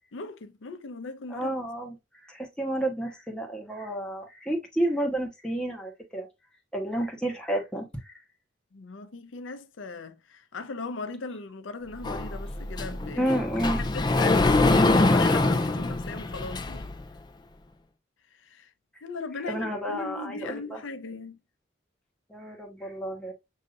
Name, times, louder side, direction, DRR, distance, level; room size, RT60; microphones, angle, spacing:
voice 1, 0.1-1.5 8.7-13.4 13.8-16.9 18.3-18.7 19.0-21.4, left 3 dB, 85° left, 0.6 m, -38 dB
voice 2, 1.3-6.3 6.7-8.1 13.2-13.8 19.5-20.8 22.3-23.3, right 1 dB, 5° left, 1.1 m, -31 dB
Sliding door, 12.0-17.0, left 2 dB, 20° left, 0.4 m, -24 dB
6.4 x 2.7 x 2.4 m
head